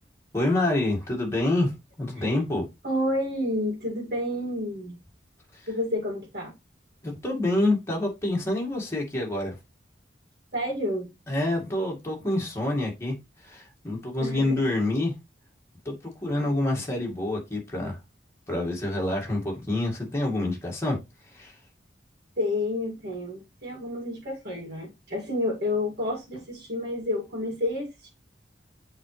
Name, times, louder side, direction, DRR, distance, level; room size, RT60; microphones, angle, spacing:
voice 1, 0.3-2.7 5.5-5.7 7.0-9.6 11.3-13.2 13.4-15.1 15.9-18.0 18.5-21.0 21.3-21.6, left 2 dB, 15° left, 2.1 m, -27 dB
voice 2, 2.8-5.0 5.7-6.5 10.5-11.1 14.2-14.6 22.4-28.1, left 1 dB, 60° right, 2.4 m, -30 dB
8.0 x 3.9 x 3.3 m
head